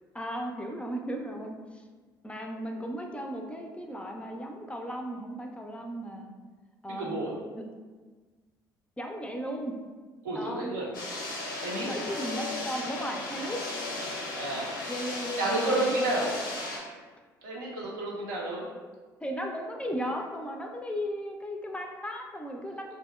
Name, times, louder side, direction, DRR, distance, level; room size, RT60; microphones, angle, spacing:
voice 1, 0.1-1.8 2.2-6.3 6.8-7.2 9.0-9.7 10.4-10.7 11.8-13.6 14.9-15.5 15.8-16.0 19.2-22.9, equal, 10° left, 2 dB, 0.4 m, -36 dB
voice 2, 6.9-7.3 10.2-10.9 11.6-11.9 14.3-14.7 15.4-16.4 17.4-18.7, right 1 dB, 80° right, -3 dB, 0.6 m, -30 dB
sound 1, 10.9-16.8, left 2 dB, 90° left, 0.5 m, -36 dB
2.7 x 2.7 x 2.2 m, 1.4 s
hypercardioid pair, 55°, 11 cm